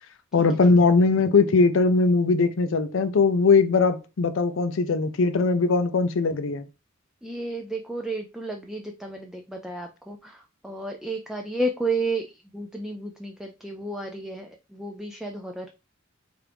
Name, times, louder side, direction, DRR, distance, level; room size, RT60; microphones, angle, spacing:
voice 1, 0.3-6.6, left 4 dB, 65° left, 0.5 m, -20 dB
voice 2, 7.2-10.3 10.6-12.3 12.5-15.7, right 2 dB, ahead, 0.3 m, -32 dB
4.5 x 2.5 x 3.3 m
head